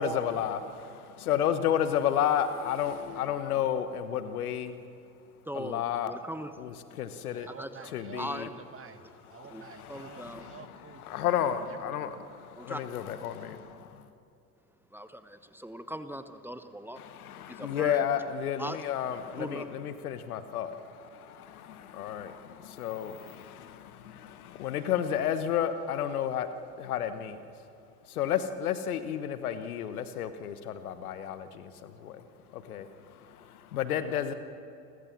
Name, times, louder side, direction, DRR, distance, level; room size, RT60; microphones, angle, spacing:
voice 1, 0.0-4.8 5.5-6.2 6.6-7.5 7.9-8.5 9.7-10.6 11.0-14.1 17.0-27.4 28.0-34.3, left 9 dB, 75° left, 11 dB, 1.4 m, -32 dB
voice 2, 5.5-6.5 7.6-7.7 8.2-8.5 9.5-9.6 9.9-10.4 12.6-12.8 14.9-17.0 17.5-18.0 18.6-18.8 19.4-19.7, equal, 5° right, 9 dB, 1.1 m, -39 dB
voice 3, 7.3-11.3 11.7-11.8, right 6 dB, 30° right, 8 dB, 2.1 m, -50 dB
29.5 x 15.0 x 7.5 m, 2.8 s
hypercardioid pair, 70°, 44 cm